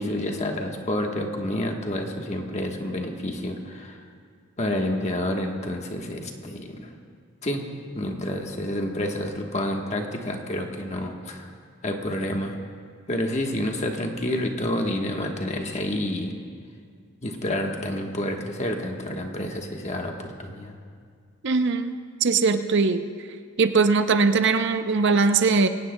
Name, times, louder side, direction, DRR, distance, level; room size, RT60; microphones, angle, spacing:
voice 1, 0.0-4.0 4.6-6.9 7.4-7.6 7.9-11.5 11.8-12.6 13.1-16.4 17.2-20.7, left 1 dB, 30° left, 2 dB, 1.2 m, -29 dB
voice 2, 21.4-23.1 23.6-25.7, right 4 dB, 55° right, 9 dB, 0.6 m, -21 dB
23.0 x 17.5 x 2.2 m, 2.1 s
head